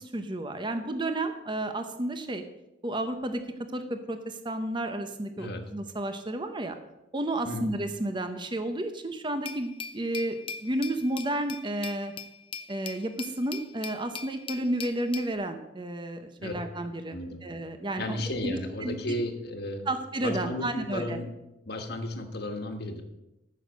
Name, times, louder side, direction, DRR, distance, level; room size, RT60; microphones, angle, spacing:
voice 1, 0.0-2.4 2.8-3.4 3.7-6.8 7.1-12.1 12.7-19.1 19.9-21.2, right 1 dB, 25° right, 7 dB, 0.8 m, -32 dB
Glass, 9.4-15.3, left 6 dB, 25° left, 0.6 m, -41 dB
voice 2, 17.1-17.4 18.0-19.9 20.2-21.2 21.6-23.0, left 1 dB, 55° left, 4 dB, 1.6 m, -34 dB
14.5 x 6.4 x 6.5 m, 0.93 s
head